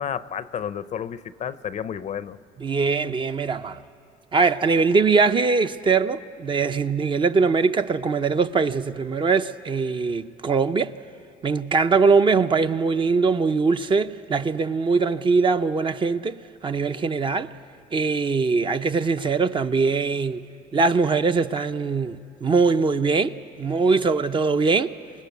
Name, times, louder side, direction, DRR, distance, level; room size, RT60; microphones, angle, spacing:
voice 1, 0.0-2.4, left 8 dB, 45° left, 0.6 m, -31 dB
voice 2, 2.6-3.8 4.3-10.9 11.4-17.5 17.9-20.4 20.7-24.9, right 4 dB, 30° right, 0.6 m, -22 dB
27.0 x 19.5 x 8.2 m
cardioid pair, 110°, 17 cm